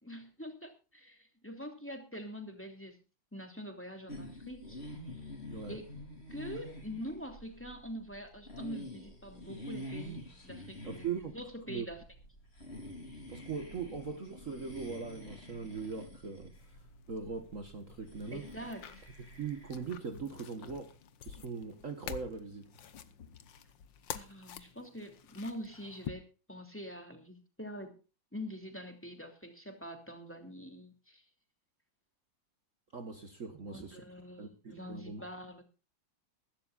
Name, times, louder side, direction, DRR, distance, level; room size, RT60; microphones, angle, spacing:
voice 1, 0.0-3.0 3.3-4.8 5.7-5.8 6.3-12.0 18.3-19.0 24.1-28.0 28.3-31.2 33.5-35.6, equal, 5° left, 2.9 m, -45 dB
sound 1, 4.1-19.9, left 1 dB, 30° left, 3.9 m, -47 dB
voice 2, 5.5-5.8 10.8-11.9 13.3-16.5 17.1-18.5 19.2-21.0 21.2-22.7 32.9-34.0 34.4-35.2, right 5 dB, 45° right, 1.7 m, -40 dB
sound 2, 16.5-26.1, left 8 dB, 75° left, 1.8 m, -49 dB
23.0 x 12.0 x 2.5 m
omnidirectional pair, 2.0 m